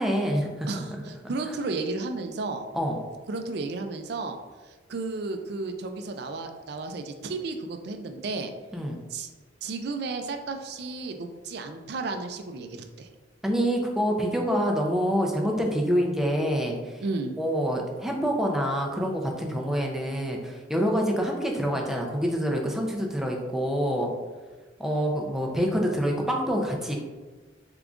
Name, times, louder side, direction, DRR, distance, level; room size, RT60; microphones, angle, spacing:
voice 1, 0.0-0.9 1.5-1.6 2.7-3.0 8.7-9.0 13.4-17.0 17.4-24.1 24.8-27.0, equal, ahead, 0 dB, 0.4 m, -26 dB
voice 2, 0.7-2.6 3.3-4.4 4.9-8.5 9.1-9.3 9.6-12.7 13.0-13.1 15.8-16.1 17.0-17.4, right 3 dB, 60° right, 6 dB, 0.4 m, -33 dB
3.8 x 3.5 x 2.4 m, 1.3 s
head